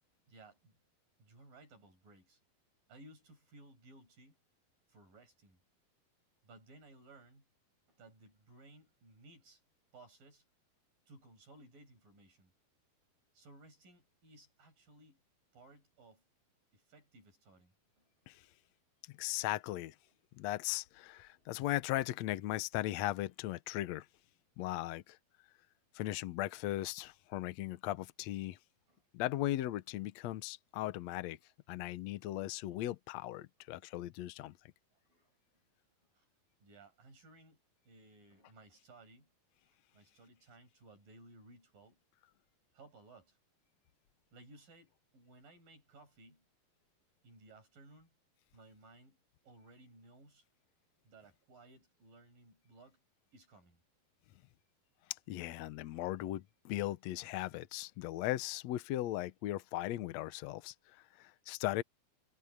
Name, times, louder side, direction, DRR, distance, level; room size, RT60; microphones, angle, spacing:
voice 1, 0.3-0.7 1.2-2.4 2.9-4.4 4.9-5.6 6.4-7.4 7.9-9.6 9.9-10.4 11.1-12.5 13.3-15.2 15.5-16.2 16.7-18.3 21.3-21.5 28.9-29.0 34.9-35.6 36.1-36.3 36.6-37.6 37.8-39.3 39.7-42.0 42.7-43.4 44.3-46.5 47.2-48.1 48.5-49.2 49.4-50.5 51.0-53.0 53.3-53.8, right 2 dB, 60° right, 9.4 m, -59 dB
voice 2, 19.1-19.9 20.3-24.1 24.6-25.2 25.9-28.6 29.1-31.4 31.7-34.5 55.3-61.8, left 15 dB, 85° left, 1.5 m, -38 dB
omnidirectional pair, 4.4 m